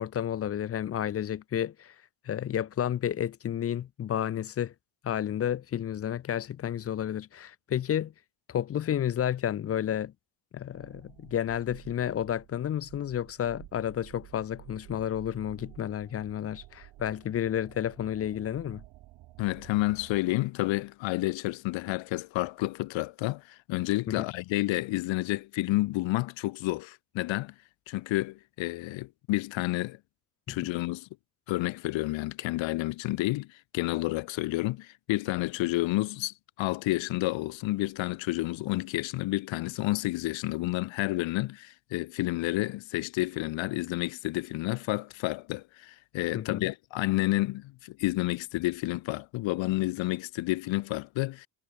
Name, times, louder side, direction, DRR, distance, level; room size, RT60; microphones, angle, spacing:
voice 1, 0.0-1.9 2.3-4.7 5.0-8.1 8.5-10.1 10.5-18.8 24.1-24.2 30.5-30.6 46.3-46.7, left 10 dB, 35° left, 0.5 m, -31 dB
sound 1, 10.7-20.2, right 16 dB, 85° right, 1.8 m, -52 dB
voice 2, 19.4-27.5 27.9-30.0 30.5-31.1 31.5-51.5, left 19 dB, 90° left, 1.0 m, -30 dB
cardioid pair, 145°, 44 cm